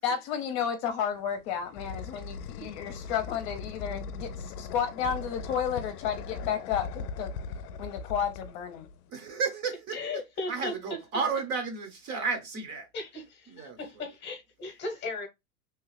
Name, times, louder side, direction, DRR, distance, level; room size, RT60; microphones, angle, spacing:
voice 1, 0.0-7.3 7.8-8.9, left 8 dB, 45° left, 0.7 m, -32 dB
sound 1, 1.1-9.1, left 4 dB, 80° left, 0.6 m, -40 dB
voice 2, 9.1-10.0 10.5-12.9 13.5-13.8, right 5 dB, 35° right, 0.9 m, -32 dB
voice 3, 9.9-10.7 12.9-15.3, left 3 dB, 25° left, 1.0 m, -37 dB
3.0 x 2.3 x 3.2 m
supercardioid pair, 135°, 46 cm